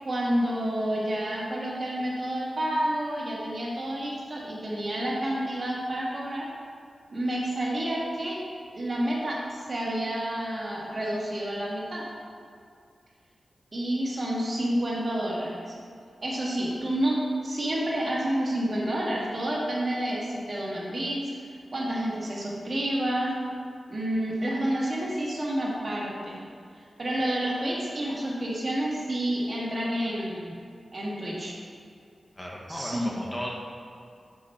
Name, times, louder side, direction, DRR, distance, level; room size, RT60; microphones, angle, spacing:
voice 1, 0.0-6.5 7.1-8.4 8.7-12.1 13.7-15.7 16.2-21.2 21.7-23.4 23.9-26.4 27.0-30.5 30.9-31.5 32.7-33.2, right 1 dB, 45° right, -4 dB, 1.7 m, -29 dB
voice 2, 32.4-33.5, equal, 20° left, -3 dB, 1.2 m, -35 dB
6.3 x 4.8 x 5.7 m, 2.3 s
wide cardioid pair, 75°, 0 cm